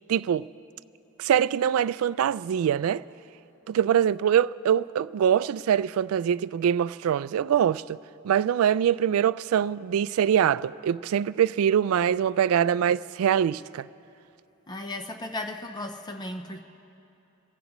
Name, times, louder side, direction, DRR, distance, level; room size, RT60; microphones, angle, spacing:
voice 1, 0.1-0.5 1.2-3.0 3.7-8.0 8.2-13.9, right 9 dB, 85° right, 0.3 m, -23 dB
voice 2, 14.7-16.6, left 1 dB, 20° left, 0.6 m, -35 dB
26.0 x 16.0 x 3.1 m
head